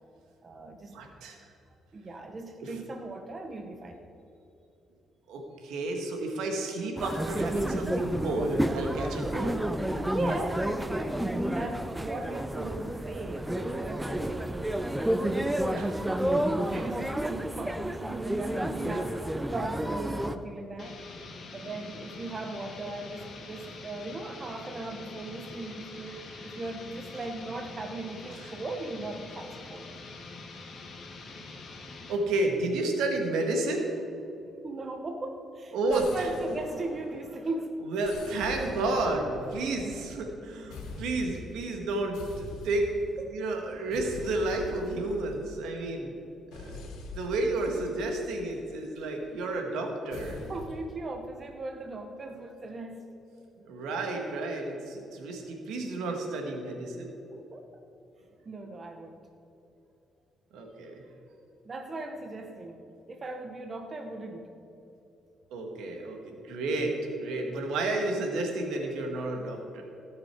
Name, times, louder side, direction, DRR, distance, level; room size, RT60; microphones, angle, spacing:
voice 1, 0.4-1.0 1.9-4.0 10.1-14.7 15.0-21.0 21.5-29.9 34.6-37.8 43.2-43.4 50.5-53.0 57.3-57.7 58.4-59.2 61.6-62.8 63.1-64.5, right 2 dB, 35° right, 5 dB, 1.0 m, -38 dB
voice 2, 0.9-1.4 2.6-2.7 5.3-9.6 15.7-15.9 32.1-33.9 35.7-36.3 37.8-42.9 43.3-46.2 46.5-46.8 47.1-50.4 53.6-57.1 60.5-61.1 65.5-69.8, right 2 dB, 85° right, 3 dB, 1.6 m, -31 dB
sound 1, 7.0-20.4, right 1 dB, 10° right, 0.6 m, -30 dB
sound 2, 20.8-32.2, left 3 dB, 55° left, 1.9 m, -45 dB
sound 3, 35.9-37.5 38.0-40.4 40.7-41.5 42.1-43.2 43.9-45.8 46.5-48.9 50.1-50.9, left 2 dB, 90° left, 2.0 m, -43 dB
16.5 x 6.8 x 4.5 m, 2.8 s
cardioid pair, 90°, 0 cm